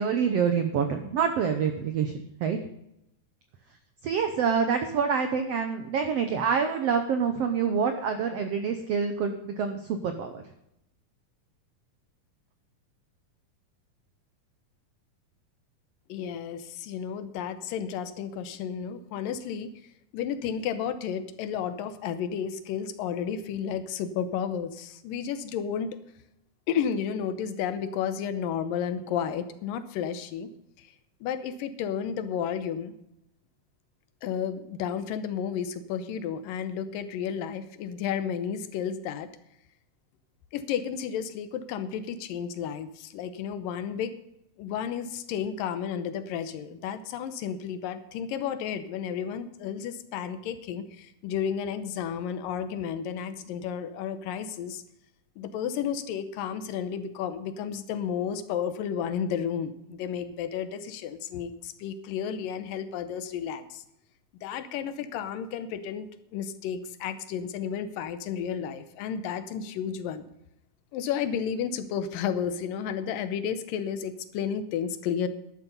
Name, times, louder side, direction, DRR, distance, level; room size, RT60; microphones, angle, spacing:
voice 1, 0.0-2.6 4.0-10.4, right 6 dB, 80° right, 7 dB, 1.4 m, -27 dB
voice 2, 16.1-19.7 20.1-26.0 26.7-30.5 30.8-30.9 31.2-32.9 34.2-39.3 40.5-44.1 44.6-54.8 55.4-63.8 64.4-70.3 70.9-75.3, left 8 dB, 80° left, 11 dB, 2.5 m, -32 dB
11.5 x 11.0 x 5.4 m, 0.83 s
omnidirectional pair, 4.0 m